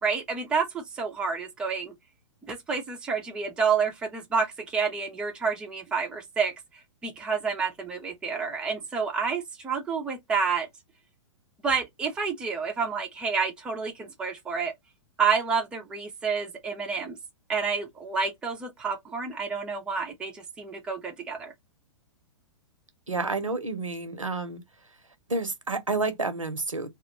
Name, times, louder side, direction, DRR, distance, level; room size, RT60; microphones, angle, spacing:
voice 1, 0.0-1.9 2.5-6.5 7.0-10.7 11.6-14.7 15.2-17.2 17.5-21.5, right 5 dB, 5° right, 0.3 m, -29 dB
voice 2, 23.1-24.6 25.3-26.9, right 3 dB, 85° right, 0.6 m, -29 dB
2.3 x 2.1 x 2.7 m
figure-of-eight pair, 110°, 16 cm